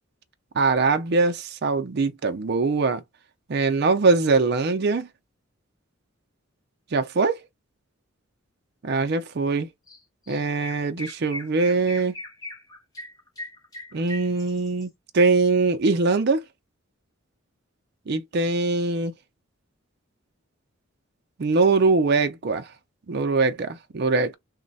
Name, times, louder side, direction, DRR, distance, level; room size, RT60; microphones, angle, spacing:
voice 1, 0.6-3.0 3.5-5.1 6.9-7.4 8.8-9.7 10.3-12.2 13.9-16.4 18.1-19.1 21.4-22.7 23.1-24.3, right 3 dB, 50° right, 0.5 m, -22 dB
Chirp tweet, 9.9-10.0 10.3-14.8, left 1 dB, 15° left, 0.9 m, -39 dB
3.1 x 2.2 x 3.9 m
head